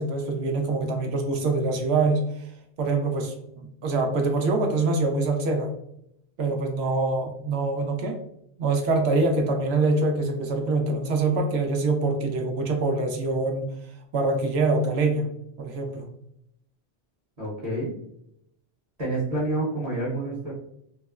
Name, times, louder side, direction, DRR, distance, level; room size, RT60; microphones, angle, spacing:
voice 1, 0.0-2.4 2.8-5.7 6.4-8.2 8.6-13.7 14.1-15.2 15.6-16.1, right 3 dB, 80° right, 3 dB, 0.8 m, -24 dB
voice 2, 17.4-17.9 19.0-20.5, right 2 dB, 40° right, -6 dB, 0.9 m, -28 dB
3.6 x 2.0 x 2.3 m, 0.74 s
omnidirectional pair, 1.1 m